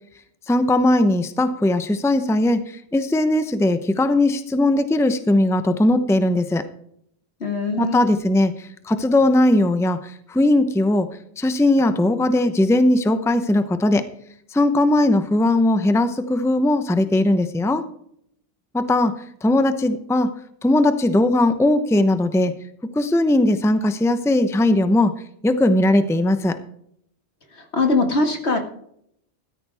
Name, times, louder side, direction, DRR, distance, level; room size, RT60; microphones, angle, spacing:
voice 1, 0.5-6.6 7.8-11.1 11.4-14.0 14.5-17.8 18.7-19.1 19.4-20.3 20.6-22.5 22.9-25.1 25.4-26.6, left 1 dB, 5° left, 10 dB, 0.7 m, -19 dB
voice 2, 7.4-8.2 27.7-28.6, left 3 dB, 75° left, 5 dB, 2.2 m, -21 dB
14.0 x 13.5 x 3.5 m, 0.70 s
omnidirectional pair, 1.1 m